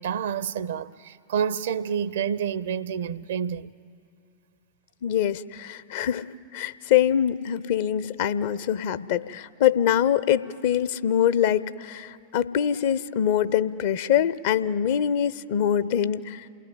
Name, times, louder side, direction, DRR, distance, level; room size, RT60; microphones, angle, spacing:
voice 1, 0.0-3.7, right 8 dB, 60° right, 0.6 m, -28 dB
voice 2, 5.0-6.3 6.5-16.5, left 9 dB, 55° left, 0.6 m, -24 dB
28.5 x 17.5 x 9.4 m
figure-of-eight pair, 90°, 0 cm